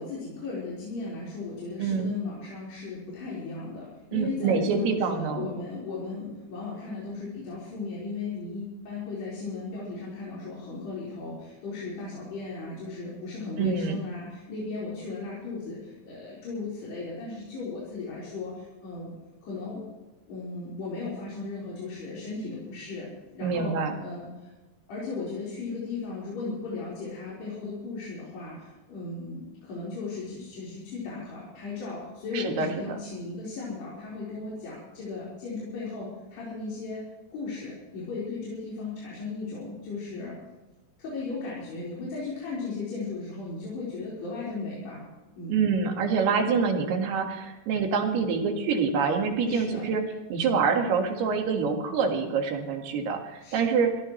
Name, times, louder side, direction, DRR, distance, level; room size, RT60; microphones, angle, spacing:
voice 1, 0.0-19.1 19.4-19.8 20.3-23.1 23.3-24.5 24.9-40.4 41.0-45.0 45.4-45.6 49.5-49.9 53.4-53.6, left 3 dB, 85° left, -8 dB, 6.8 m, -36 dB
voice 2, 1.8-2.1 4.1-5.5 13.6-14.0 23.4-23.9 32.3-33.0 45.5-50.0 50.3-53.9, right 5 dB, 80° right, 3 dB, 3.9 m, -26 dB
23.5 x 18.0 x 3.2 m, 1.1 s
omnidirectional pair, 4.6 m